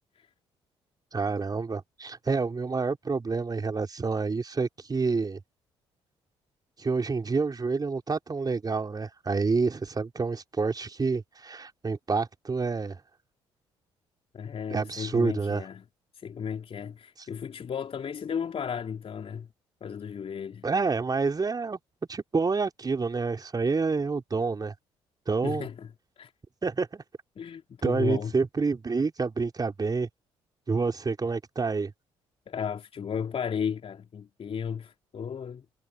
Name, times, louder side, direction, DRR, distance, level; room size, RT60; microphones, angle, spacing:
voice 1, 1.1-5.4 6.8-13.0 14.7-15.6 20.6-21.8 22.1-24.7 25.3-25.7 26.6-27.0 27.8-30.1 30.7-31.9, right 4 dB, 30° right, 3.8 m, -28 dB
voice 2, 14.3-15.8 16.1-19.5 19.8-20.7 25.4-25.9 26.2-26.3 27.4-28.3 32.5-35.6, left 7 dB, 45° left, 3.8 m, -34 dB
figure-of-eight pair, 45°, 14 cm